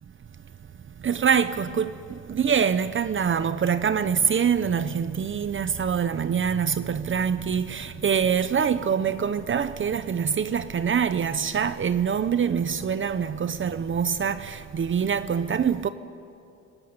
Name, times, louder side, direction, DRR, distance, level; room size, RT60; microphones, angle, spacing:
voice 1, 1.0-1.9 2.3-15.9, right 7 dB, 40° right, 0.9 m, -24 dB
29.0 x 18.0 x 9.7 m
cardioid pair, 90°, 30 cm